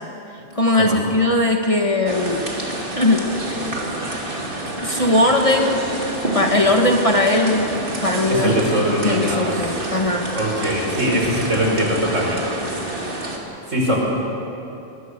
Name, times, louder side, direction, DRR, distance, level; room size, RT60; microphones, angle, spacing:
voice 1, 0.5-2.5 2.9-3.3 4.8-5.8 6.3-7.7 8.0-8.5 9.0-10.3, left 1 dB, 25° left, 2 dB, 1.6 m, -19 dB
sound 1, 2.1-13.4, right 1 dB, 45° right, 2.7 m, -28 dB
voice 2, 8.3-9.7 10.3-12.4 13.7-14.0, equal, 75° right, -1 dB, 5.1 m, -21 dB
23.0 x 21.0 x 6.7 m, 2.9 s
omnidirectional pair, 1.3 m